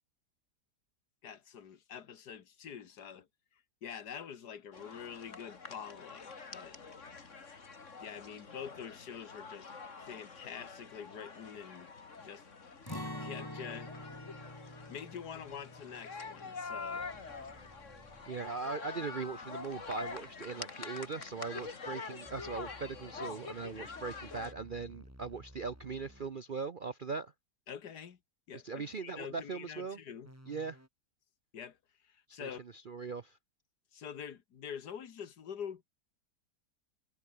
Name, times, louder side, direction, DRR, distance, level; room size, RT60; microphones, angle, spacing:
voice 1, 1.2-3.3 3.8-6.8 8.0-9.7 10.0-11.9 12.2-12.5 13.2-13.9 14.9-17.1 27.7-28.2 28.5-30.3 31.5-31.8 32.0-32.6 33.9-35.9, left 8 dB, 70° left, 1.9 m, -46 dB
sound 1, 4.7-24.5, left 4 dB, 45° left, 2.5 m, -46 dB
Acoustic guitar, 12.9-18.8 19.1-19.2 19.7-20.2, left 1 dB, 10° left, 4.7 m, -47 dB
sound 2, 17.0-18.4 22.2-26.4 30.2-30.9, equal, 10° right, 6.9 m, -56 dB
voice 2, 18.3-27.3 28.5-30.0 30.5-30.8 32.4-32.5 32.9-33.4, right 4 dB, 50° right, 0.6 m, -40 dB
omnidirectional pair, 1.8 m